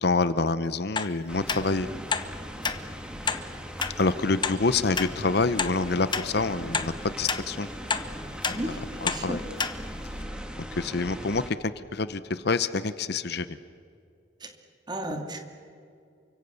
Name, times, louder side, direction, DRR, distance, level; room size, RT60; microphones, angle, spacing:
voice 1, 0.0-1.9 4.0-7.7 8.5-8.7 9.0-9.4 10.8-13.5, left 3 dB, 55° left, 14 dB, 0.8 m, -27 dB
sound 1, 1.0-1.1 1.5-1.6 2.1-2.3 2.6-2.8 3.3-3.4 3.8-3.9 4.4-4.6 5.0-5.1 5.6-5.7 6.1-6.3 6.7-6.9 7.3-7.4 7.9-8.1 8.4-8.6 9.1-9.2 9.6-9.7 10.2-10.3, left 5 dB, 25° left, 1.1 m, -28 dB
sound 2, 1.3-11.5, equal, 5° right, 1.9 m, -39 dB
voice 2, 8.5-9.4 14.4-14.5 14.9-15.4, right 1 dB, 25° right, 4 dB, 2.7 m, -34 dB
29.0 x 25.0 x 7.0 m, 2.4 s
head